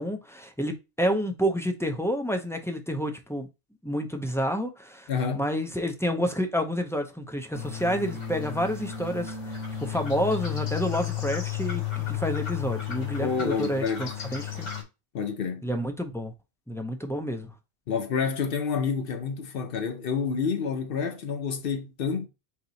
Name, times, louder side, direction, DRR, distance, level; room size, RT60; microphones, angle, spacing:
voice 1, 0.0-3.5 3.8-14.7 15.6-16.3 16.7-17.5, equal, 5° left, 0.3 m, -29 dB
voice 2, 5.1-5.5 13.2-14.1 15.1-15.6 17.9-22.3, left 6 dB, 55° left, 0.9 m, -28 dB
sound 1, 7.5-14.8, left 10 dB, 85° left, 1.9 m, -33 dB
4.6 x 2.9 x 3.9 m
omnidirectional pair, 1.2 m